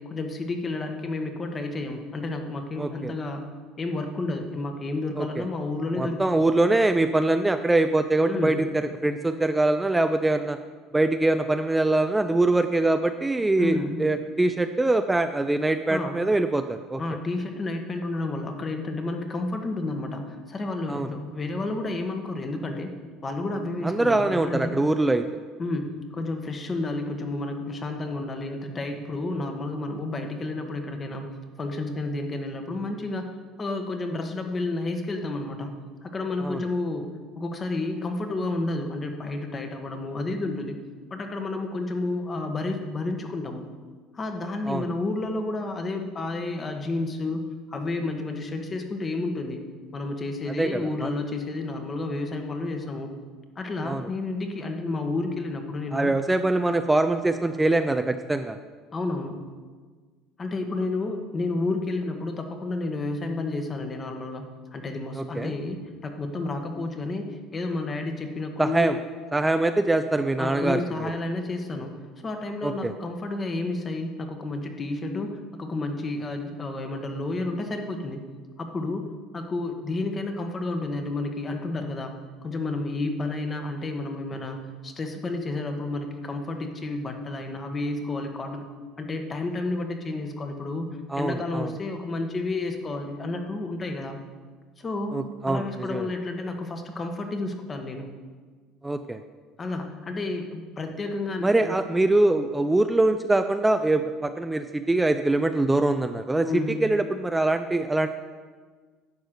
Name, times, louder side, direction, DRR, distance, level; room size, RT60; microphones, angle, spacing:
voice 1, 0.0-3.4 3.8-6.5 8.3-8.6 13.6-14.0 15.9-16.2 17.0-22.9 23.2-24.7 25.6-31.3 31.6-33.3 33.6-35.7 36.0-40.8 41.1-43.6 44.1-47.4 47.7-49.6 49.9-53.1 53.5-56.1 58.9-59.4 60.4-64.4 64.7-68.9 70.4-78.2 78.6-79.1 79.3-82.1 82.4-88.7 89.0-90.9 91.2-94.2 94.8-95.2 95.5-98.1 99.6-101.8 106.4-106.8, left 2 dB, 30° left, 5 dB, 1.4 m, -31 dB
voice 2, 2.8-3.1 5.2-5.4 6.0-10.6 10.9-17.0 20.9-21.1 23.8-25.2 36.4-36.6 44.6-44.8 50.6-51.1 53.8-54.1 55.9-58.6 65.2-65.5 68.6-68.9 69.3-71.1 72.6-72.9 91.1-91.7 95.1-96.1 98.8-99.2 101.4-106.5 106.8-108.1, right 2 dB, 10° right, 8 dB, 0.4 m, -23 dB
10.5 x 4.8 x 6.5 m, 1.5 s
supercardioid pair, 85°, 0 cm